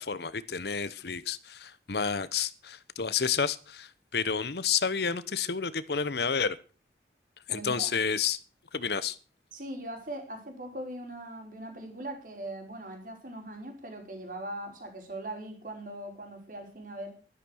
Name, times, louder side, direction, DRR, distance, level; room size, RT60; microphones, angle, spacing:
voice 1, 0.0-6.6 7.5-8.4 8.7-9.2, left 6 dB, 65° left, 17 dB, 0.9 m, -30 dB
voice 2, 7.5-7.9 9.5-17.1, right 1 dB, 50° right, 3 dB, 4.9 m, -40 dB
12.5 x 11.5 x 6.4 m, 0.36 s
head